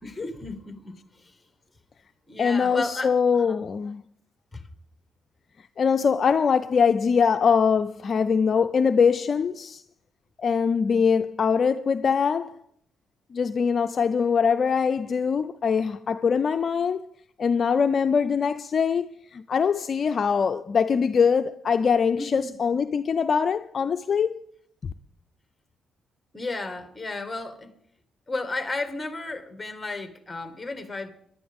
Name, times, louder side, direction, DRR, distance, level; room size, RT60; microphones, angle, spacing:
voice 1, 0.0-1.4 2.3-3.7 4.5-4.6 22.2-22.6 26.3-27.7 28.3-31.1, left 2 dB, 15° left, 1.8 m, -34 dB
voice 2, 2.4-4.0 5.8-9.8 10.4-12.5 13.3-17.0 17.4-24.4 24.8-24.9, left 6 dB, 45° left, 0.5 m, -23 dB
23.5 x 11.5 x 3.6 m
cardioid pair, 90°, 0 cm